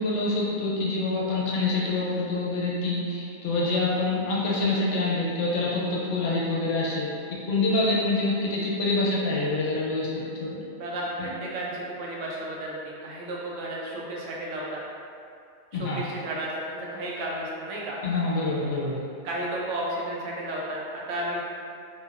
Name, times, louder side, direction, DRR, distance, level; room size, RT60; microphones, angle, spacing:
voice 1, 0.0-10.6 11.2-11.3 15.8-16.0 18.0-19.0, left 2 dB, 90° left, -5 dB, 0.9 m, -26 dB
voice 2, 10.8-14.8 15.8-18.0 19.2-21.4, right 1 dB, 85° right, -4 dB, 0.9 m, -33 dB
2.8 x 2.2 x 2.3 m, 2.4 s
omnidirectional pair, 1.2 m